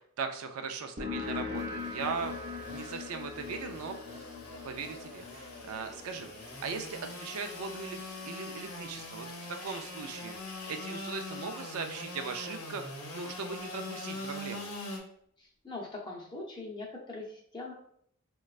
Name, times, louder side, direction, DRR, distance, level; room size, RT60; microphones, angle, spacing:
voice 1, 0.0-4.0 4.6-14.7, right 5 dB, 85° right, 6 dB, 0.4 m, -39 dB
sound 1, 1.0-8.2, left 5 dB, 45° right, 0.6 m, -42 dB
Engine / Sawing, 1.2-15.0, left 2 dB, 80° left, 0.7 m, -43 dB
voice 2, 15.4-17.7, left 2 dB, 20° left, -2 dB, 0.6 m, -42 dB
4.0 x 2.2 x 2.4 m, 0.66 s
head